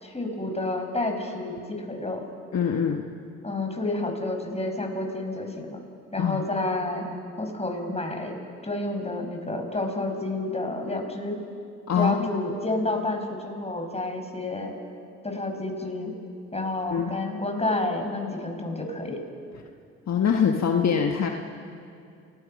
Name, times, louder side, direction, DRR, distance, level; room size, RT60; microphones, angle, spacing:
voice 1, 0.0-2.2 3.4-5.8 6.1-7.1 7.4-11.4 12.0-14.7 15.2-16.1 16.5-19.2, left 2 dB, 20° left, 3 dB, 5.6 m, -30 dB
voice 2, 2.5-3.0 6.2-6.5 11.9-12.3 16.9-17.1 20.1-21.3, left 7 dB, 50° left, 3 dB, 1.6 m, -23 dB
29.0 x 20.5 x 5.5 m, 2.4 s
supercardioid pair, 55°, 34 cm